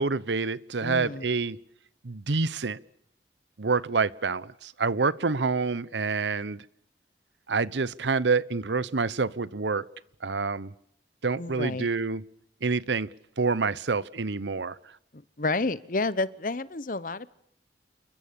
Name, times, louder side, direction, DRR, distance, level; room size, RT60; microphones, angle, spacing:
voice 1, 0.0-1.6 2.0-2.8 3.6-6.6 7.5-9.8 10.2-10.7 11.2-12.2 12.6-13.1 13.4-14.8, right 4 dB, 85° right, 19 dB, 0.9 m, -27 dB
voice 2, 0.8-1.3 11.4-11.9 15.1-17.3, left 3 dB, 50° left, 17 dB, 0.9 m, -30 dB
29.0 x 21.5 x 6.9 m, 0.72 s
head